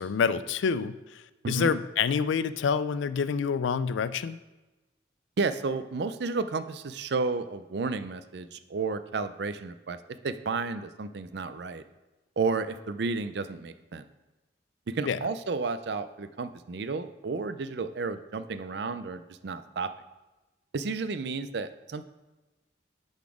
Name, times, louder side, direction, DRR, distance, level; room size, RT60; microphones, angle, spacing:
voice 1, 0.0-4.4 15.0-15.2, left 6 dB, 90° left, 15 dB, 0.4 m, -27 dB
voice 2, 5.4-10.0 10.2-11.8 12.4-14.0 14.9-19.9 20.7-22.0, right 4 dB, 65° right, 11 dB, 0.4 m, -32 dB
10.5 x 4.0 x 4.8 m, 1.1 s
head